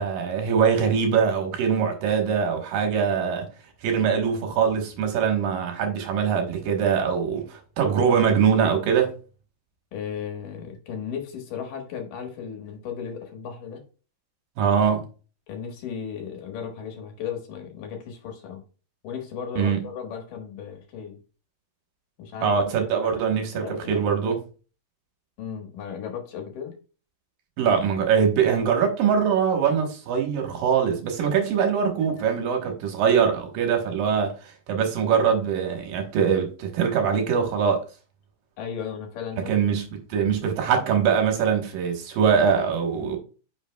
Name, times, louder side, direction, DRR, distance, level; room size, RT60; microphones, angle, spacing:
voice 1, 0.0-3.5 3.8-9.1 14.6-15.0 19.6-19.9 22.4-24.4 27.6-37.8 39.4-43.2, right 7 dB, 70° right, 2.8 m, -23 dB
voice 2, 9.9-13.8 15.5-18.6 19.0-21.2 22.2-23.2 23.5-24.1 25.4-26.8 38.6-39.7 43.0-43.2, left 7 dB, 65° left, 2.8 m, -35 dB
9.8 x 5.8 x 2.2 m
omnidirectional pair, 4.3 m